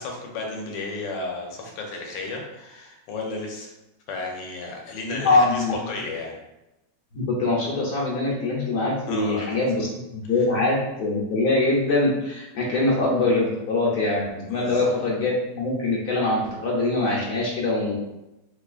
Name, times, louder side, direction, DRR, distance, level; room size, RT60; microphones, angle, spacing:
voice 1, 0.0-3.7 4.1-6.3 9.1-9.5 14.5-14.9, left 3 dB, 85° left, 0 dB, 1.4 m, -33 dB
voice 2, 5.1-5.7 7.1-18.0, left 2 dB, 65° left, -4 dB, 1.3 m, -23 dB
3.4 x 3.2 x 2.4 m, 0.95 s
omnidirectional pair, 1.9 m